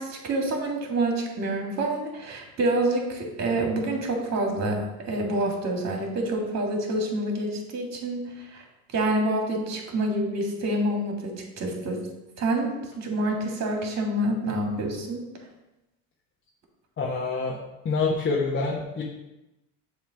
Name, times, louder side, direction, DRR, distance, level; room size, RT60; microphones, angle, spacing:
voice 1, 0.0-8.6 8.9-12.0 12.4-15.2, right 1 dB, 45° right, 1 dB, 1.9 m, -27 dB
voice 2, 17.0-17.6 17.8-19.0, left 4 dB, 35° left, -3 dB, 1.0 m, -26 dB
7.1 x 3.1 x 5.1 m, 0.96 s
supercardioid pair, 90°, 38 cm